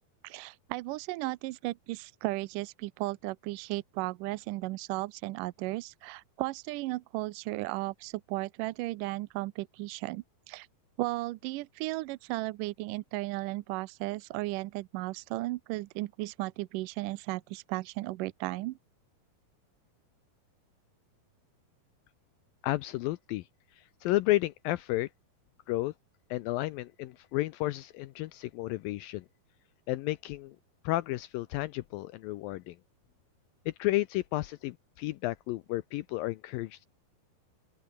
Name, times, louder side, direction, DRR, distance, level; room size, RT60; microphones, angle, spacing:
voice 1, 0.2-10.7 11.0-18.8, right 19 dB, 85° right, 1.9 m, -35 dB
voice 2, 22.6-23.5 23.7-25.1 25.7-25.9 26.3-29.3 29.9-30.6 30.8-32.8 33.7-36.9, left 17 dB, 80° left, 2.2 m, -32 dB
open air
omnidirectional pair, 4.5 m